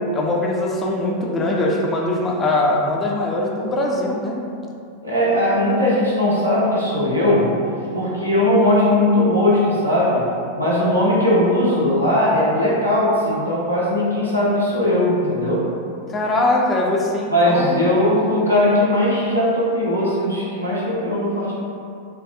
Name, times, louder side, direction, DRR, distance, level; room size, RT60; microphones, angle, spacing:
voice 1, 0.1-4.4 16.1-17.9, left 2 dB, 20° left, -1 dB, 0.3 m, -21 dB
voice 2, 5.0-7.5 7.9-10.2 10.6-15.7 17.3-21.5, left 1 dB, 85° right, -8 dB, 0.7 m, -19 dB
3.3 x 2.3 x 2.4 m, 2.5 s
figure-of-eight pair, 90°, 0 cm